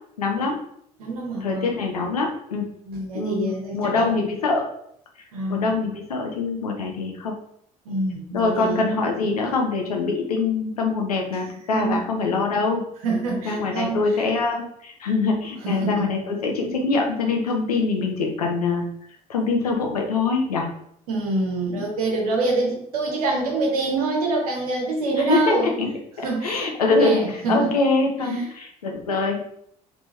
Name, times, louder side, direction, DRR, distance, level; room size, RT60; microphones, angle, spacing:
voice 1, 0.2-0.6 1.4-2.7 3.1-4.7 5.5-7.3 8.3-12.8 13.4-18.9 19.3-20.7 25.2-25.9 26.2-29.4, left 3 dB, 75° left, 2 dB, 0.7 m, -24 dB
voice 2, 1.0-1.7 2.8-4.0 5.3-5.8 7.8-8.8 11.7-12.0 13.0-14.0 15.6-16.2 21.1-25.7 26.2-26.7 27.0-27.7 28.3-28.5, right 2 dB, 70° right, 0 dB, 1.0 m, -26 dB
3.4 x 2.9 x 3.2 m, 0.69 s
figure-of-eight pair, 55°, 19 cm